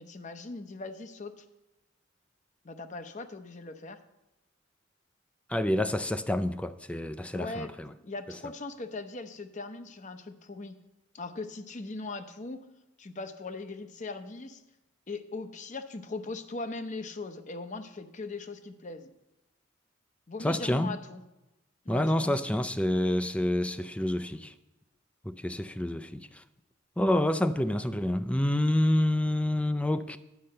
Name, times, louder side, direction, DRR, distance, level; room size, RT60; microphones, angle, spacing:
voice 1, 0.0-1.4 2.6-4.0 7.3-7.7 8.0-10.8 11.1-12.6 13.0-14.6 15.1-19.1 20.3-21.2 21.8-22.4, left 3 dB, 35° left, 0.7 m, -39 dB
voice 2, 5.5-7.9 20.4-20.9 21.9-24.5 25.2-26.4 27.0-30.2, left 1 dB, 5° left, 0.4 m, -28 dB
10.5 x 5.5 x 7.6 m
head